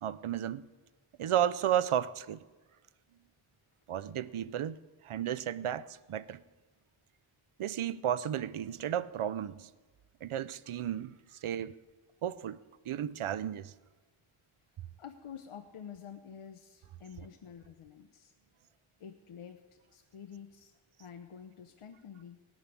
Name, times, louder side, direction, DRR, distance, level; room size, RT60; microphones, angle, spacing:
voice 1, 0.0-0.7 1.2-2.4 3.9-4.8 5.0-6.4 7.6-9.7 10.2-11.1 11.4-11.8 12.2-12.6 12.9-13.7, right 10 dB, 85° right, 0.7 m, -33 dB
voice 2, 15.0-18.3 19.0-20.7 21.0-22.4, left 7 dB, 85° left, 0.9 m, -49 dB
17.5 x 7.5 x 9.7 m
wide cardioid pair, 100°, 49 cm